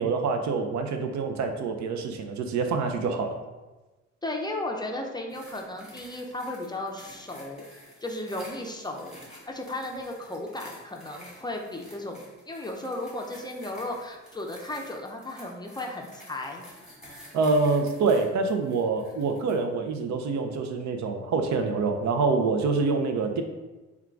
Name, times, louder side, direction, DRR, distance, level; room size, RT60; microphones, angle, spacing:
voice 1, 0.0-3.4 17.3-23.4, right 4 dB, 70° right, 5 dB, 0.6 m, -26 dB
voice 2, 4.2-7.6 8.0-16.7, left 1 dB, 15° left, 1 dB, 0.5 m, -35 dB
sound 1, 5.3-19.6 20.3-20.4, equal, ahead, 1.4 m, -50 dB
3.6 x 2.3 x 4.5 m, 1.2 s
cardioid pair, 90°, 30 cm